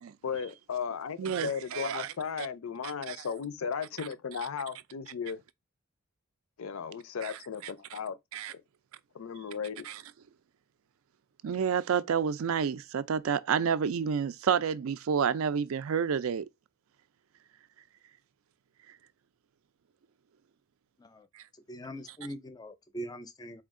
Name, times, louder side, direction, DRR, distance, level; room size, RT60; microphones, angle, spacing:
voice 1, 0.2-5.4 6.6-8.2 8.5-8.6 9.1-9.9, left 6 dB, 90° left, 0.5 m, -36 dB
voice 2, 1.2-2.1 2.4-2.5 3.1-3.2 7.2-7.3 8.3-8.5 9.9-10.0 11.4-16.5 21.4-21.5, right 7 dB, 85° right, 0.4 m, -29 dB
voice 3, 21.7-23.6, equal, 20° left, 0.4 m, -42 dB
4.3 x 2.3 x 3.6 m
head